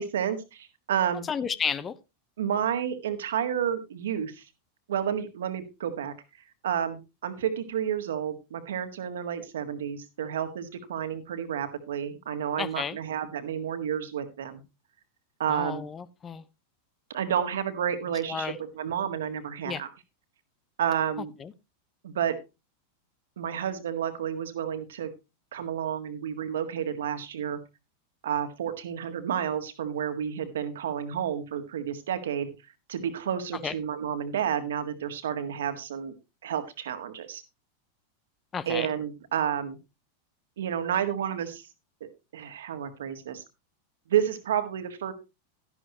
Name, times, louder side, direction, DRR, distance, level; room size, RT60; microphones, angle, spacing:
voice 1, 0.0-1.3 2.4-4.4 4.9-6.1 6.6-14.6 15.4-15.8 17.1-19.9 20.8-21.3 22.0-22.4 23.4-25.1 25.5-27.6 28.2-32.5 32.9-36.1 36.4-37.4 38.7-39.8 40.6-41.7 42.0-43.4 44.1-45.1, right 9 dB, 60° right, 1.7 m, -30 dB
voice 2, 1.2-2.0 12.6-13.0 15.5-16.4 18.3-18.6 19.6-19.8 21.4-21.5 33.6-33.7 38.5-38.9, left 6 dB, 20° left, 0.7 m, -32 dB
13.0 x 11.0 x 2.9 m
figure-of-eight pair, 90°, 0 cm